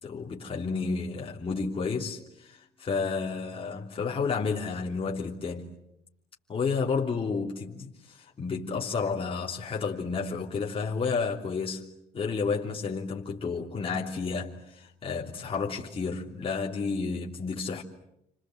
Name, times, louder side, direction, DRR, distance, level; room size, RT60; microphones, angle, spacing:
voice 1, 0.0-5.7 6.5-11.8 12.1-17.8, left 5 dB, 35° left, 3.2 m, -31 dB
29.5 x 25.5 x 7.9 m
cardioid pair, 110°, 17 cm